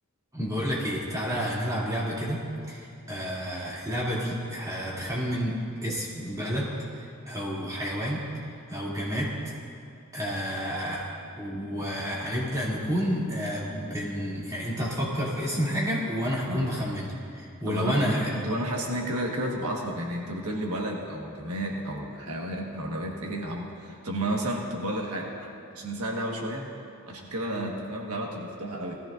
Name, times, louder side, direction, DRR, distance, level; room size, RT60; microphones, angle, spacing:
voice 1, 0.3-2.4 2.7-8.2 8.7-9.3 10.1-11.1 11.4-17.1 17.3-18.3, equal, 15° right, -7 dB, 2.7 m, -30 dB
voice 2, 17.6-26.6 27.1-29.0, right 1 dB, 85° right, 0 dB, 1.5 m, -32 dB
19.0 x 14.5 x 2.6 m, 2.6 s
head